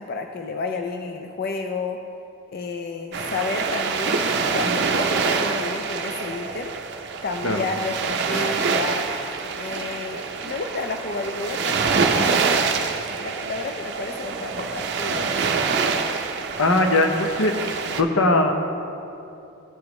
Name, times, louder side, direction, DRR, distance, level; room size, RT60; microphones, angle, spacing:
voice 1, 0.0-2.0 2.5-6.7 7.2-9.1 9.5-12.8 13.2-15.5, left 3 dB, 45° left, 4 dB, 0.4 m, -31 dB
sound 1, 3.1-18.0, right 5 dB, 55° right, 0.5 m, -25 dB
voice 2, 16.6-17.5 17.9-18.5, left 2 dB, 80° left, 4 dB, 0.8 m, -19 dB
14.5 x 5.0 x 3.1 m, 2.8 s
head